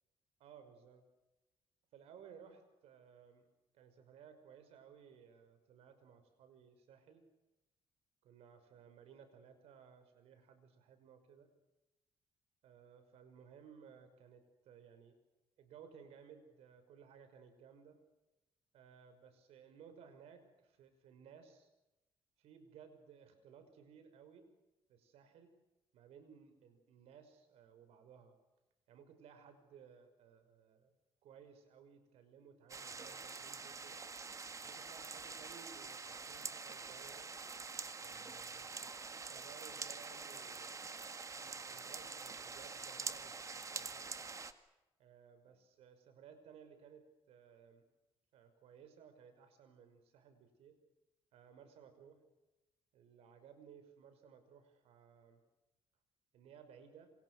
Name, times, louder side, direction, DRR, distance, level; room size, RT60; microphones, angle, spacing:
voice 1, 0.4-1.0 1.9-3.5 3.7-7.2 8.2-11.5 12.6-15.2 15.6-18.0 18.7-21.7 22.4-24.5 24.9-25.5 25.9-28.4 28.9-30.9 31.2-34.0 34.6-37.3 38.0-40.8 41.4-44.1 45.0-47.8 48.3-50.7 51.3-52.2 52.9-55.4 56.3-57.1, right 7 dB, 85° right, 9 dB, 5.8 m, -59 dB
sound 1, 32.7-44.5, right 4 dB, 30° right, 2.0 m, -46 dB
27.5 x 27.0 x 6.5 m, 0.98 s
cardioid pair, 105°, 10 cm